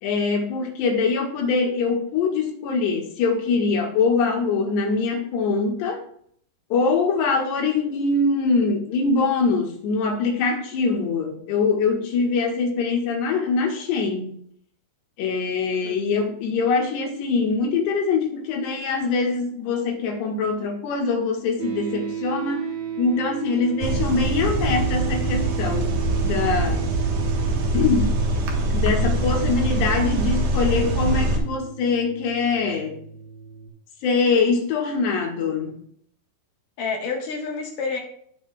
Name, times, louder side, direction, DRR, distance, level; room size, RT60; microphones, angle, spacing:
voice 1, 0.0-6.0 6.7-14.3 15.2-22.7 23.0-26.0 26.2-26.8 27.7-28.1 28.7-33.0 34.0-35.8, left 4 dB, 85° left, 2 dB, 3.6 m, -23 dB
sound 1, 21.6-33.7, right 8 dB, 30° right, 1.6 m, -34 dB
sound 2, 23.8-31.4, right 2 dB, 65° right, 2.4 m, -23 dB
voice 2, 36.8-38.0, left 4 dB, 60° left, 2 dB, 2.7 m, -29 dB
17.0 x 6.0 x 2.3 m, 0.63 s
omnidirectional pair, 4.7 m